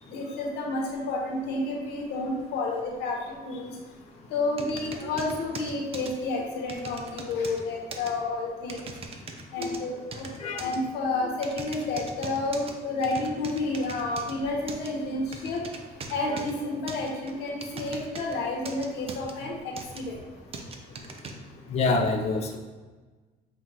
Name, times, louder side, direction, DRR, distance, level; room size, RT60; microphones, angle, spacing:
voice 1, 0.1-3.7 4.3-8.9 9.5-10.3 10.6-15.6 16.1-20.2, left 2 dB, 85° left, -1 dB, 1.1 m, -30 dB
sound 1, 4.6-6.1 6.7-7.6 7.9-8.1 8.7-9.8 10.1-10.8 11.4-12.7 13.0-14.3 14.7-14.9 15.3-16.5 16.9-18.4 18.7-19.3 19.8-20.0 20.5-21.3, right 4 dB, 35° right, 0.5 m, -40 dB
voice 2, 21.7-22.6, left 3 dB, 40° left, 1 dB, 0.5 m, -25 dB
7.1 x 2.5 x 2.9 m, 1.3 s
cardioid pair, 110°, 17 cm